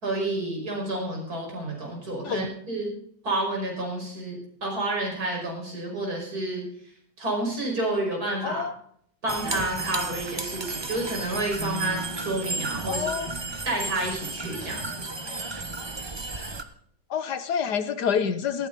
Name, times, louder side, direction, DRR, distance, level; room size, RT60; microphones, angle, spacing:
voice 1, 0.0-2.9 3.2-6.6 7.2-8.6 9.2-13.1 13.6-14.9, right 2 dB, 55° right, -1 dB, 5.8 m, -30 dB
voice 2, 8.4-8.7 12.9-13.3 17.1-18.7, left 7 dB, 70° left, 12 dB, 1.5 m, -27 dB
sound 1, 9.3-16.6, right 3 dB, 25° right, 0.6 m, -33 dB
19.0 x 15.0 x 4.1 m, 0.63 s
omnidirectional pair, 1.9 m